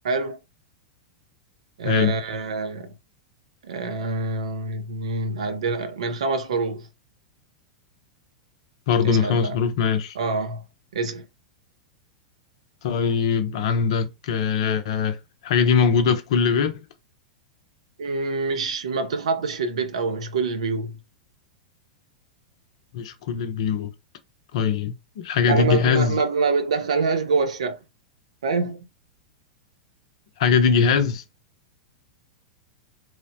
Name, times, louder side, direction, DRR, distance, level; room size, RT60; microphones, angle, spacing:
voice 1, 0.0-0.4 1.8-3.0 3.6-6.9 9.0-9.6 10.1-10.6 10.9-11.2 18.0-21.0 25.5-27.8 28.4-28.8, right 4 dB, 65° right, 0.5 m, -26 dB
voice 2, 1.8-2.1 8.9-10.2 12.8-15.2 15.4-16.8 22.9-23.9 24.5-26.1 30.4-31.2, left 6 dB, 55° left, 0.5 m, -21 dB
3.1 x 2.0 x 2.6 m
figure-of-eight pair, 95°, 4 cm